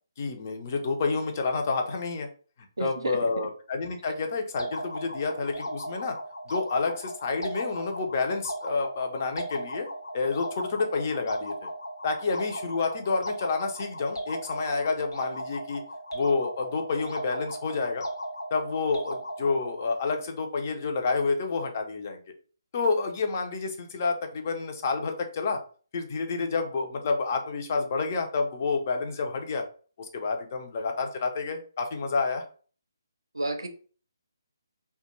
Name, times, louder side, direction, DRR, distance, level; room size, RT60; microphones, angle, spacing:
voice 1, 0.2-2.3 2.8-6.2 6.5-9.9 10.1-11.7 12.0-15.8 16.1-18.0 18.5-22.2 22.7-25.6 25.9-29.6 30.0-32.4, left 4 dB, 35° left, 0.4 m, -29 dB
voice 2, 2.8-3.2 33.3-33.7, right 1 dB, 75° right, 0.4 m, -30 dB
sound 1, 4.6-20.0, equal, 75° left, 0.6 m, -37 dB
2.2 x 2.0 x 2.9 m
figure-of-eight pair, 140°, 2 cm